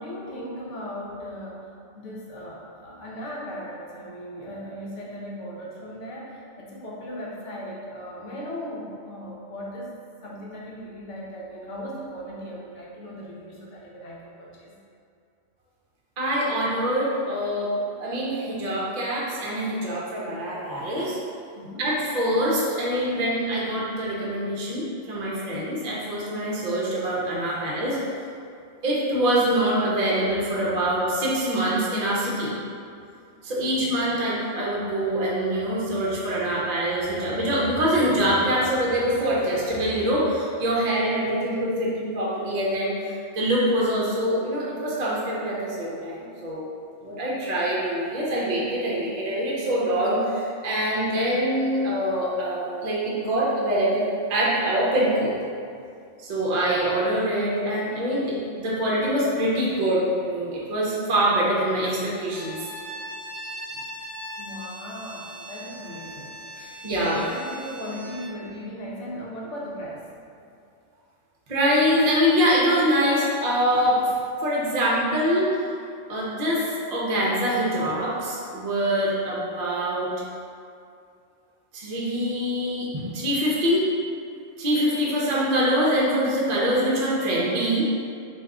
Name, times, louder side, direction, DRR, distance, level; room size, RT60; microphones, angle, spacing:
voice 1, 0.0-1.7 1.9-9.9 10.2-14.8 21.5-21.9 32.9-33.0 33.6-34.0 63.7-63.9 64.4-66.4 66.9-70.1, equal, 75° left, -4 dB, 1.0 m, -37 dB
voice 2, 16.2-21.2 21.8-28.0 28.8-32.5 33.4-46.7 47.0-54.0 54.3-55.3 56.2-62.6 66.6-67.2 71.5-74.0 74.4-75.8 76.1-80.1 81.7-83.9 84.6-87.9, equal, 45° right, -5 dB, 0.6 m, -24 dB
Bowed string instrument, 62.2-68.3, equal, 45° left, 1.2 m, -39 dB
3.4 x 2.7 x 3.6 m, 2.4 s
omnidirectional pair, 1.3 m